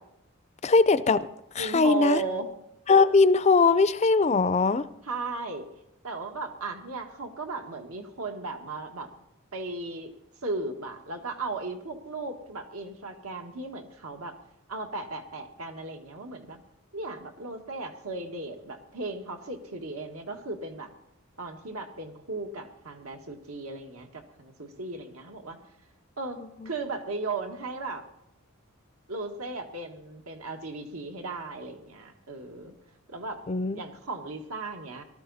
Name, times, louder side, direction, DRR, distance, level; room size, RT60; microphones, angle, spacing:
voice 1, 0.6-1.3 1.5-2.2 2.9-4.8 33.5-33.8, left 4 dB, 30° left, 15 dB, 0.4 m, -20 dB
voice 2, 1.6-2.5 5.0-5.7 6.0-9.1 9.5-10.1 10.4-14.3 14.7-16.6 16.9-20.9 21.4-25.6 26.2-26.4 26.6-28.0 29.1-32.7 33.1-33.4 33.7-35.0, right 3 dB, 80° right, 4 dB, 1.8 m, -36 dB
18.5 x 13.0 x 4.1 m, 0.81 s
head